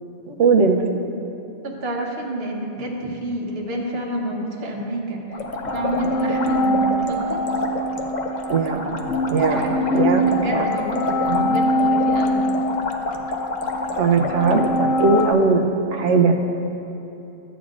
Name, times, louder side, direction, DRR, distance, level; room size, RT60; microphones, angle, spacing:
voice 1, 0.3-0.8 8.5-8.9 9.3-10.2 10.5-10.6 11.3-11.5 14.0-15.7 15.9-16.4, right 4 dB, 75° right, 3 dB, 1.1 m, -19 dB
voice 2, 1.6-5.4 5.7-7.4 9.5-12.5, right 1 dB, 55° right, -1 dB, 1.3 m, -28 dB
sound 1, 5.3-15.3, left 2 dB, 45° left, 0.7 m, -29 dB
sound 2, 5.5-15.3, equal, 85° left, 1.1 m, -24 dB
14.0 x 9.3 x 2.5 m, 2.9 s
omnidirectional pair, 1.3 m